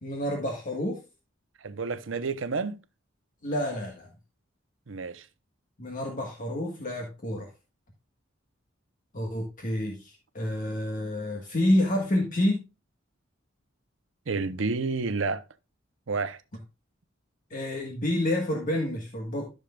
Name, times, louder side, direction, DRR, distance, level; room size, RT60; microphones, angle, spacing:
voice 1, 0.0-1.0 3.4-4.1 5.8-7.5 9.1-12.6 17.5-19.5, left 1 dB, 45° left, 1.5 m, -28 dB
voice 2, 1.6-2.8 4.9-5.3 14.3-15.4 16.1-16.4, right 4 dB, 85° right, 0.8 m, -30 dB
13.5 x 6.5 x 2.3 m
head